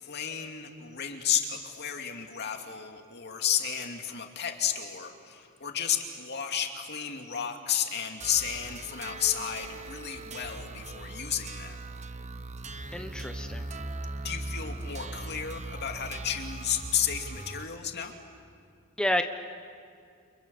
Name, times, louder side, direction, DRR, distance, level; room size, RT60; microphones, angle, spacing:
voice 1, 0.0-11.8 14.1-18.1, left 9 dB, 55° left, 3 dB, 2.5 m, -32 dB
sound 1, 8.2-17.6, right 2 dB, 35° right, 1.1 m, -39 dB
voice 2, 12.9-13.7 19.0-19.2, left 1 dB, 5° left, 5 dB, 0.9 m, -29 dB
29.5 x 28.0 x 7.1 m, 2.3 s
head